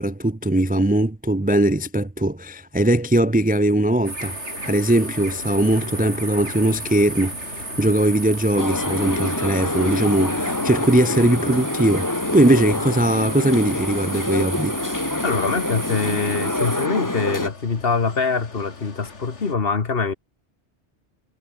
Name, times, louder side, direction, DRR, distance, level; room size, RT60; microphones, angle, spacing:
voice 1, 0.0-4.4 4.7-14.7, right 1 dB, 10° right, 0.5 m, -20 dB
sound 1, 4.0-16.9, right 2 dB, 80° right, 5.8 m, -34 dB
sound 2, 4.2-19.5, left 4 dB, 90° left, 2.9 m, -41 dB
sound 3, 8.6-17.5, left 1 dB, 15° left, 1.7 m, -26 dB
voice 2, 15.2-20.1, left 4 dB, 55° left, 1.8 m, -24 dB
omnidirectional pair, 1.2 m